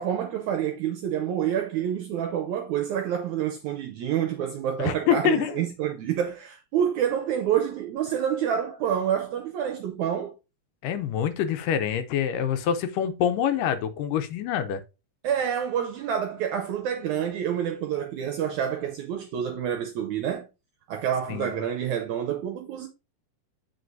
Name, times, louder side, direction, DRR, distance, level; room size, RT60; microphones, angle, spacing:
voice 1, 0.0-10.4 15.2-20.5 20.9-22.9, right 9 dB, 80° right, 1.7 m, -28 dB
voice 2, 4.8-5.7 10.8-14.8 21.3-21.5, left 9 dB, 80° left, 2.2 m, -26 dB
7.8 x 4.8 x 2.6 m
omnidirectional pair, 4.0 m